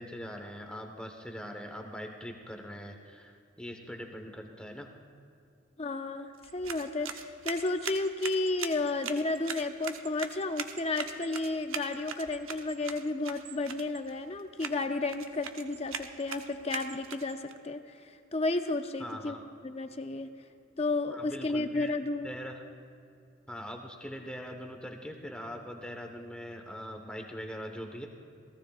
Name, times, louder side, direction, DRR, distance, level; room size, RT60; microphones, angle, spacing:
voice 1, 0.0-4.9 19.0-19.4 21.1-21.9 22.2-22.6 23.5-28.1, equal, 5° left, 2 dB, 1.1 m, -42 dB
voice 2, 5.8-19.4 19.6-20.3 20.8-22.3, left 2 dB, 30° left, 7 dB, 0.6 m, -32 dB
sound 1, 6.3-17.5, right 7 dB, 80° right, 0.8 m, -42 dB
28.0 x 18.5 x 2.5 m, 2.4 s
head